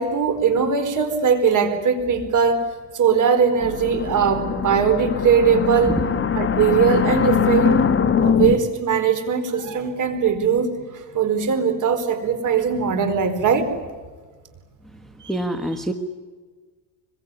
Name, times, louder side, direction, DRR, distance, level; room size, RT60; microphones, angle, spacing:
voice 1, 0.0-2.7 2.9-5.9 6.3-7.9 8.2-13.7 15.2-15.4, right 6 dB, 45° right, 7 dB, 4.6 m, -20 dB
sound 1, 3.6-8.6, left 7 dB, 30° left, 1.6 m, -21 dB
voice 2, 15.3-15.9, right 1 dB, ahead, 6 dB, 1.3 m, -25 dB
25.0 x 23.0 x 9.8 m, 1.4 s
cardioid pair, 130°, 44 cm